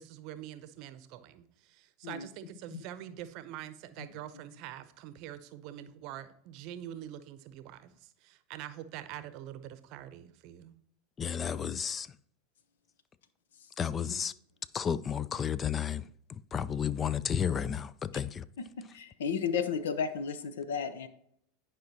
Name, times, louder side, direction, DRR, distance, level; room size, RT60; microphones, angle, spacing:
voice 1, 0.0-10.7, right 12 dB, 55° right, 0.7 m, -45 dB
voice 2, 11.2-12.1 13.8-14.3 14.7-16.0 16.5-18.5, left 8 dB, 30° left, 0.4 m, -32 dB
voice 3, 18.6-21.1, left 6 dB, 80° left, 0.7 m, -33 dB
10.5 x 4.9 x 2.8 m
hypercardioid pair, 95°, 0 cm